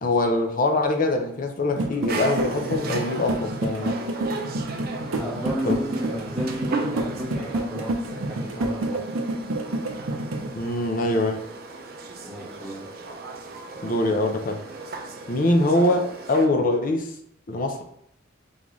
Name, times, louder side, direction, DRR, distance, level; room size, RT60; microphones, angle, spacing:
voice 1, 0.0-4.0 5.7-5.8 10.5-11.4 13.8-14.6 15.3-17.1 17.5-17.8, left 2 dB, 45° left, 4 dB, 0.5 m, -23 dB
sound 1, 1.7-10.5, right 1 dB, 90° right, 0.6 m, -29 dB
sound 2, 2.1-16.5, right 3 dB, 50° right, 0.5 m, -36 dB
voice 2, 5.1-8.0 8.2-9.1 12.2-12.9, equal, ahead, -4 dB, 1.0 m, -33 dB
3.8 x 3.7 x 3.0 m, 0.70 s
head